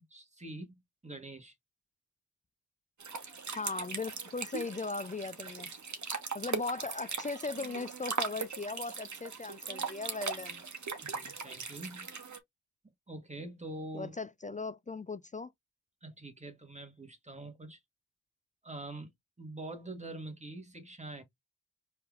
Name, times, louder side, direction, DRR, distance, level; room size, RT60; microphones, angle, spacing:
voice 1, 0.1-1.5 11.0-12.0 13.1-14.2 16.0-17.8 18.6-19.1 19.4-21.2, right 2 dB, 20° right, 1.7 m, -44 dB
sound 1, 3.0-12.4, right 5 dB, 50° right, 1.3 m, -39 dB
voice 2, 3.6-5.7 6.3-10.7 13.9-15.5, left 3 dB, 20° left, 0.3 m, -38 dB
4.4 x 3.5 x 2.4 m
cardioid pair, 50°, 38 cm